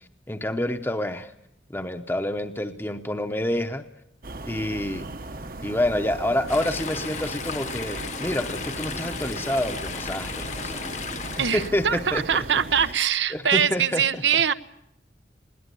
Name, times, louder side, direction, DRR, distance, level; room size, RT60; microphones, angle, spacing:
voice 1, 0.3-1.3 1.7-3.8 4.4-5.1 5.6-12.2 13.3-14.2, left 1 dB, 10° left, 7 dB, 0.8 m, -28 dB
sound 1, 4.2-12.9, right 2 dB, 50° right, 1.0 m, -37 dB
Chatter / Stream, 6.5-11.7, left 5 dB, 40° left, 1.1 m, -35 dB
voice 2, 11.4-14.5, right 8 dB, 85° right, 13 dB, 0.9 m, -23 dB
20.5 x 18.0 x 9.7 m, 0.80 s
head